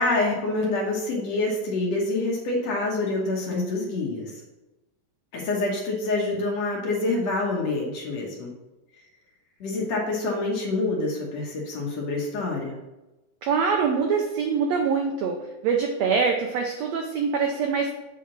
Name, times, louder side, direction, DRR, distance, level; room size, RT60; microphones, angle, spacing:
voice 1, 0.0-4.4 5.3-8.5 9.6-12.8, left 2 dB, 60° left, -2 dB, 2.0 m, -26 dB
voice 2, 13.4-17.9, right 5 dB, 85° right, 3 dB, 1.5 m, -24 dB
7.6 x 3.6 x 5.8 m, 1.0 s
omnidirectional pair, 3.8 m